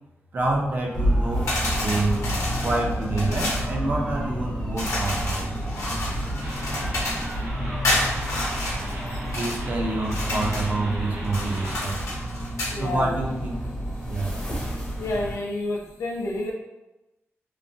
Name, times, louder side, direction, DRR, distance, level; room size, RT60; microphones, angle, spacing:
voice 1, 0.3-1.5 1.8-2.2 2.6-5.5 9.3-12.0 12.7-13.6 14.1-14.5, right 2 dB, 40° right, -1 dB, 0.4 m, -27 dB
sound 1, 0.9-15.4, equal, 15° left, 0.6 m, -29 dB
sound 2, 1.5-3.7 4.8-7.3 7.8-9.6 10.0-10.7 11.2-12.8, left 1 dB, 90° left, 0.8 m, -30 dB
sound 3, 6.4-11.9, right 1 dB, 75° right, 0.8 m, -39 dB
voice 2, 12.7-13.2 15.0-16.5, left 2 dB, 65° left, -1 dB, 0.5 m, -29 dB
3.0 x 2.1 x 2.6 m, 1.0 s
wide cardioid pair, 180°, 5 cm